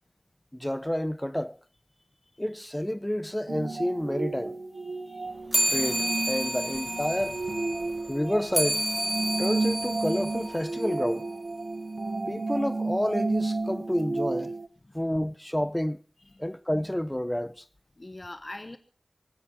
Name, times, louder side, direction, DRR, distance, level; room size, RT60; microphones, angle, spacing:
voice 1, 0.5-1.6 2.4-4.6 5.7-7.4 8.1-8.8 9.4-11.3 12.3-14.5 14.9-16.0 16.4-17.6, equal, 10° left, 0.7 m, -29 dB
sound 1, 3.5-14.7, right 3 dB, 70° right, 1.0 m, -32 dB
voice 2, 4.8-5.7 14.8-15.0 15.6-15.7 16.2-16.5 18.0-18.8, left 2 dB, 40° left, 1.0 m, -45 dB
sound 2, 5.5-11.3, equal, 10° right, 1.0 m, -31 dB
18.5 x 16.5 x 4.5 m
wide cardioid pair, 55°, 0 cm